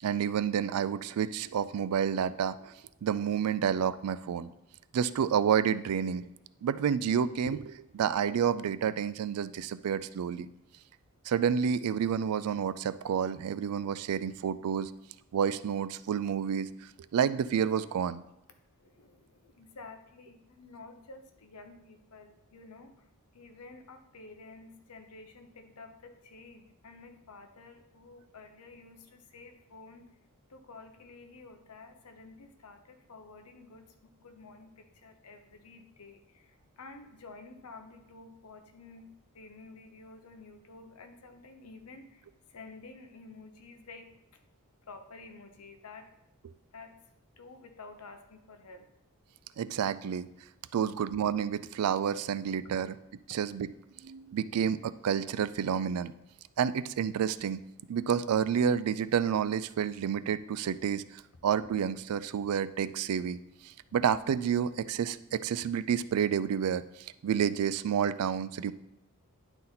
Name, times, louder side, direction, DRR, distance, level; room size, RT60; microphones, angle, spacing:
voice 1, 0.0-2.7 3.0-4.5 4.9-6.3 6.6-10.5 11.3-14.9 15.3-18.2 49.6-50.3 50.7-52.9 53.3-53.7 54.0-56.1 56.6-57.6 57.9-68.7, right 8 dB, 80° right, 15 dB, 0.3 m, -29 dB
voice 2, 18.8-23.1 23.3-30.1 30.5-44.1 44.9-46.1 46.7-47.0 47.4-48.9 50.8-51.0 52.6-52.9 63.9-64.0, left 3 dB, 80° left, 7 dB, 0.8 m, -51 dB
9.9 x 4.2 x 4.0 m, 0.88 s
head